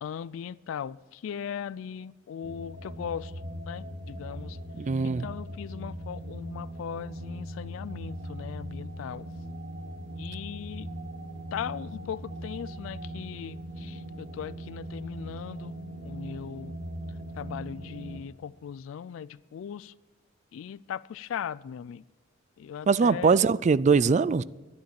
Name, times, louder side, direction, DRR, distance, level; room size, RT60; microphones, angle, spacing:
voice 1, 0.0-3.3 3.7-4.6 5.0-9.3 10.2-10.9 11.5-15.7 16.0-16.8 17.4-19.9 20.5-22.0 22.6-23.4, left 8 dB, 80° left, 0.3 m, -38 dB
sound 1, 2.4-18.2, right 1 dB, 60° right, 1.4 m, -40 dB
voice 2, 4.8-5.3 22.9-24.4, right 5 dB, 35° right, 0.3 m, -22 dB
11.5 x 10.5 x 7.6 m
head